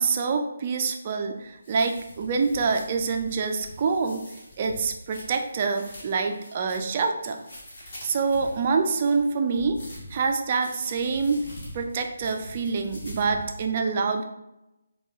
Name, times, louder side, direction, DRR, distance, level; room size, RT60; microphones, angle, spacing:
voice 1, 0.0-4.2 4.6-7.4 8.0-9.8 10.1-11.4 11.7-14.2, right 4 dB, 35° right, 4 dB, 0.4 m, -26 dB
sound 1, 1.4-13.6, left 1 dB, 40° left, 1.5 m, -44 dB
5.1 x 2.3 x 3.8 m, 0.91 s
figure-of-eight pair, 145°, 0 cm